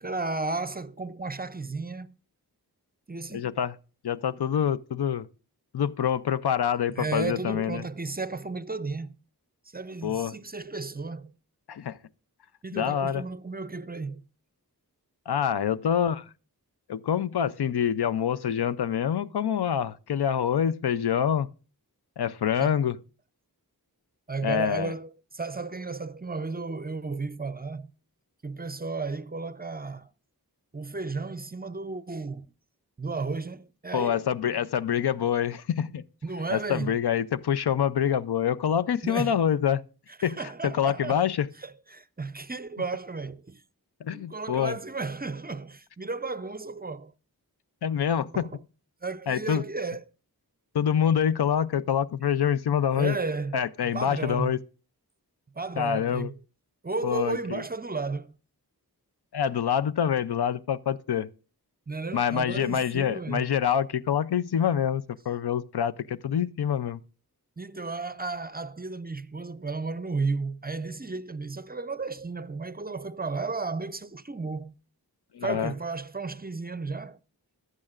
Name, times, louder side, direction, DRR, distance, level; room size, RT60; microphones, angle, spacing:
voice 1, 0.0-2.1 3.1-3.5 6.9-9.2 9.7-11.3 12.6-14.2 22.6-22.8 24.3-27.9 28.4-30.1 30.7-32.5 33.0-34.2 36.2-37.0 39.0-39.4 40.2-41.3 41.6-43.6 44.1-47.1 48.3-48.6 49.0-50.0 53.0-54.6 55.5-56.4 56.8-58.3 61.9-63.5 67.6-74.7 75.4-77.2, right 3 dB, 25° right, 0.5 m, -34 dB
voice 2, 3.3-3.7 4.0-5.3 5.7-7.8 10.0-10.3 11.7-12.0 12.7-13.2 15.3-16.3 16.9-21.5 22.2-23.0 24.4-24.9 33.9-36.0 36.5-39.8 40.2-41.5 44.0-44.8 47.8-48.4 49.3-49.6 50.7-53.1 53.5-54.6 55.8-56.3 57.0-57.6 59.3-61.3 62.1-67.0 75.3-75.7, left 8 dB, 80° left, 0.5 m, -26 dB
15.0 x 11.0 x 2.4 m
wide cardioid pair, 45°, 39 cm